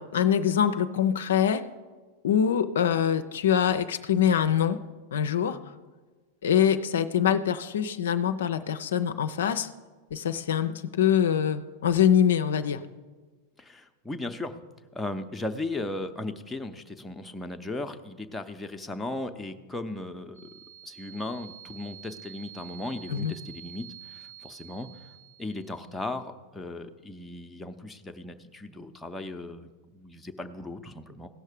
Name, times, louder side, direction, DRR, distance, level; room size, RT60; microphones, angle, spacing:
voice 1, 0.0-1.6 2.2-4.8 5.1-5.6 6.4-9.7 10.1-12.8 23.1-23.3, left 9 dB, 60° left, 10 dB, 0.5 m, -24 dB
voice 2, 13.6-14.6 14.9-20.6 20.9-24.9 25.4-31.3, left 2 dB, 5° left, 5 dB, 0.7 m, -37 dB
sound 1, 20.3-26.0, right 11 dB, 45° right, 1.0 m, -48 dB
16.0 x 6.3 x 5.1 m, 1.4 s
figure-of-eight pair, 90°, 0 cm